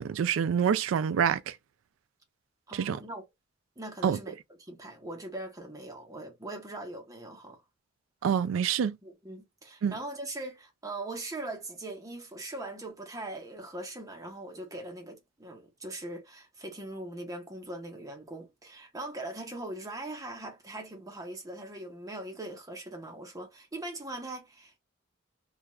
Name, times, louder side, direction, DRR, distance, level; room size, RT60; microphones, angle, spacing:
voice 1, 0.0-1.5 2.7-3.0 4.0-4.2 8.2-9.0 9.8-9.9, right 7 dB, 75° right, 0.3 m, -26 dB
voice 2, 2.7-3.2 3.8-7.6 9.0-24.8, right 2 dB, 20° right, 0.8 m, -41 dB
2.3 x 2.3 x 3.0 m
head